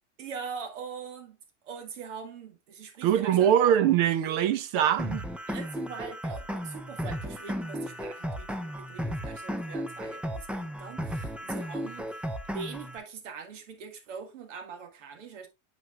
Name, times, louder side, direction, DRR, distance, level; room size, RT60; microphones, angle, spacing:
voice 1, 0.2-1.4 1.6-3.5 5.5-15.5, right 6 dB, 85° right, 1.9 m, -42 dB
voice 2, 3.0-5.2, right 10 dB, 60° right, 1.1 m, -23 dB
sound 1, 5.0-13.0, equal, 5° right, 0.6 m, -35 dB
8.9 x 5.7 x 2.4 m
supercardioid pair, 130°, 36 cm